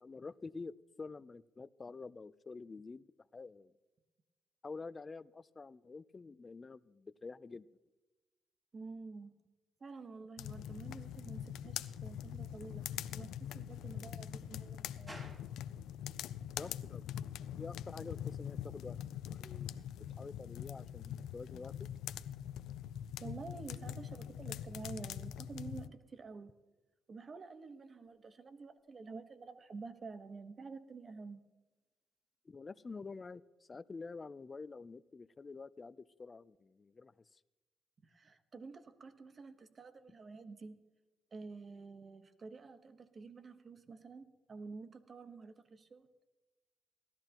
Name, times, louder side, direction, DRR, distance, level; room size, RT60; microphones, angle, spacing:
voice 1, 0.0-3.7 4.6-7.7 16.6-19.0 19.3-19.7 20.2-21.9 32.5-37.4, left 4 dB, 30° left, 17 dB, 0.5 m, -48 dB
voice 2, 8.7-9.3 9.8-15.4 23.2-26.5 27.1-31.4 38.0-40.8 41.3-46.1, right 4 dB, 40° right, 10 dB, 1.2 m, -49 dB
sound 1, 10.4-25.9, left 10 dB, 85° left, 0.5 m, -43 dB
sound 2, 15.1-32.5, right 1 dB, 20° right, 4.4 m, -65 dB
18.5 x 13.5 x 3.0 m, 1.1 s
cardioid pair, 90°, 0 cm